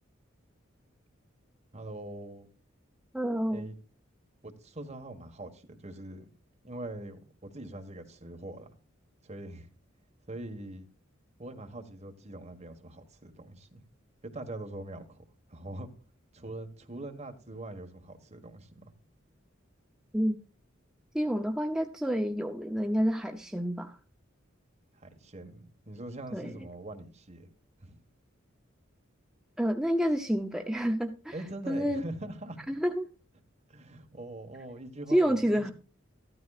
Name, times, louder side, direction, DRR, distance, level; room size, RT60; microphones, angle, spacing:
voice 1, 1.7-2.5 3.5-3.8 4.4-6.3 6.6-8.7 9.2-9.7 10.3-10.9 11.4-13.8 14.2-15.2 15.5-15.9 16.3-18.9 24.9-27.5 27.8-28.0 31.3-32.6 33.7-35.7, right 1 dB, 35° right, 1.6 m, -43 dB
voice 2, 3.1-3.7 20.1-20.4 21.1-24.0 26.3-26.5 29.6-31.4 31.7-32.0 32.7-33.1 35.1-35.7, equal, 5° right, 0.6 m, -28 dB
14.0 x 12.5 x 2.4 m
head